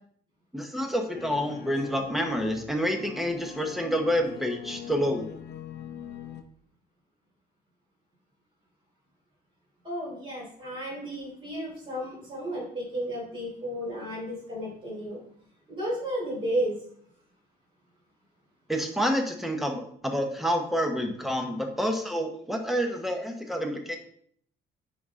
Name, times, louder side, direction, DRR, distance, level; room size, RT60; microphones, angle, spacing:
voice 1, 0.5-5.3 18.7-24.0, equal, ahead, 3 dB, 1.0 m, -28 dB
sound 1, 1.1-6.4, left 9 dB, 65° left, 0.7 m, -42 dB
voice 2, 9.8-15.2 15.7-16.8, right 1 dB, 30° right, -4 dB, 3.4 m, -33 dB
10.0 x 4.1 x 3.7 m, 0.63 s
cardioid pair, 145°, 18 cm